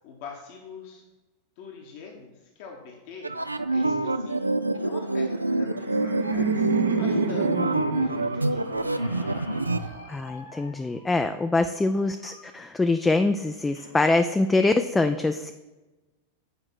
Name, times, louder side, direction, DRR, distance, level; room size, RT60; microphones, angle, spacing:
voice 1, 0.0-1.0 1.6-4.4 4.7-6.7 7.0-9.3, left 5 dB, 50° left, 0 dB, 1.0 m, -44 dB
sound 1, 3.2-9.9, right 2 dB, 85° right, 0.3 m, -26 dB
Laughter, 5.4-10.4, right 4 dB, 70° right, 0.7 m, -30 dB
Squeak, 8.9-14.0, left 3 dB, 65° left, 1.2 m, -49 dB
voice 2, 10.1-15.5, left 2 dB, 10° left, 8 dB, 0.3 m, -24 dB
8.0 x 4.8 x 4.6 m, 1.1 s
figure-of-eight pair, 90°, 0 cm